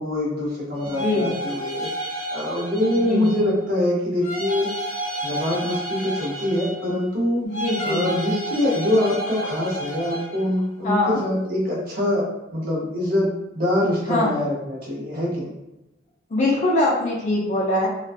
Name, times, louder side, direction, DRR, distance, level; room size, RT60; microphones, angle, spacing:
voice 1, 0.0-1.9 2.3-4.7 5.2-7.4 7.8-12.2 12.5-15.6, left 1 dB, 50° right, -4 dB, 0.7 m, -24 dB
sound 1, 0.7-3.6 4.2-7.0 7.5-10.5, right 1 dB, 55° left, 0.9 m, -31 dB
voice 2, 0.9-1.4 2.9-3.3 7.4-8.1 10.8-11.2 14.1-14.4 16.3-17.9, left 1 dB, 40° left, -2 dB, 0.5 m, -23 dB
2.3 x 2.2 x 2.4 m, 0.97 s
head